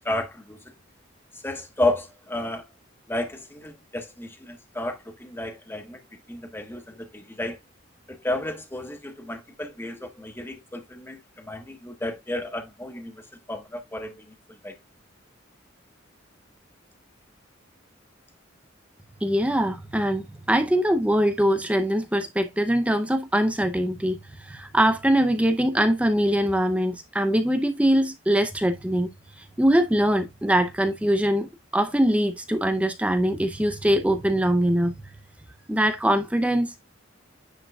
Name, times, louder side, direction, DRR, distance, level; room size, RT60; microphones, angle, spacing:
voice 1, 0.0-0.7 1.4-2.7 3.1-6.0 6.3-7.6 8.1-13.2 13.5-14.7, left 1 dB, 10° left, 1.2 m, -32 dB
voice 2, 19.2-29.1 29.6-34.9 35.7-36.7, equal, 5° right, 0.6 m, -22 dB
9.8 x 5.0 x 2.3 m
head